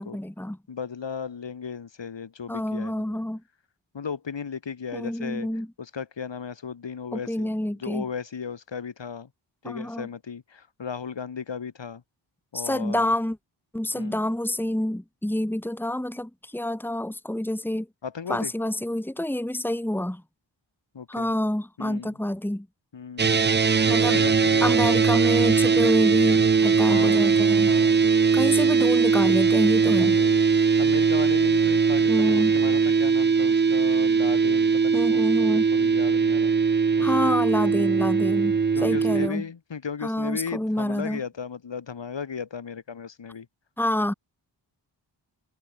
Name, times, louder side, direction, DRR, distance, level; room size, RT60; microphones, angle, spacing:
voice 1, 0.0-0.6 2.5-3.4 4.9-5.7 7.1-8.1 9.6-10.1 12.5-13.4 13.7-17.9 18.3-20.2 21.1-22.7 23.9-24.2 24.6-27.7 28.3-30.2 32.1-32.5 34.9-35.7 37.0-39.4 40.0-41.2 43.8-44.1, left 1 dB, 5° left, 2.6 m, -27 dB
voice 2, 0.7-3.2 3.9-5.5 5.8-7.5 7.8-9.3 9.6-12.0 12.5-13.1 13.9-14.2 18.0-18.5 20.9-21.3 21.8-22.1 22.9-24.7 26.9-27.2 27.7-28.0 29.9-36.5 37.0-37.9 38.7-43.5, left 6 dB, 65° left, 6.0 m, -36 dB
sound 1, 23.2-39.3, right 5 dB, 25° right, 0.5 m, -20 dB
wide cardioid pair, 130°, 46 cm